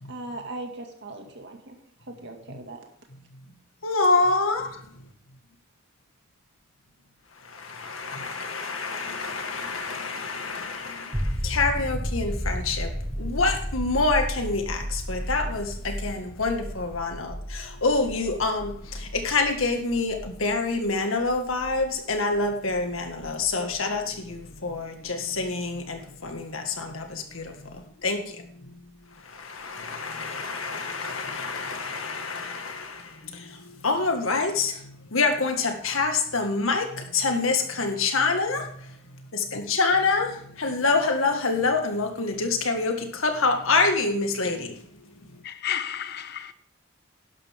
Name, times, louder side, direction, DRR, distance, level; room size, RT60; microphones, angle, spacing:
voice 1, 0.1-1.8 2.1-2.8, right 2 dB, 60° right, 2.1 m, -38 dB
voice 2, 3.8-4.8 7.4-12.9 13.2-27.6 28.0-28.4 29.3-38.9 39.3-44.8, left 3 dB, 85° left, 1.9 m, -27 dB
sound 1, 11.1-24.6 27.4-27.5, equal, 10° right, 1.4 m, -34 dB
voice 3, 45.5-46.5, left 9 dB, 55° left, 0.7 m, -31 dB
11.5 x 11.5 x 3.7 m
head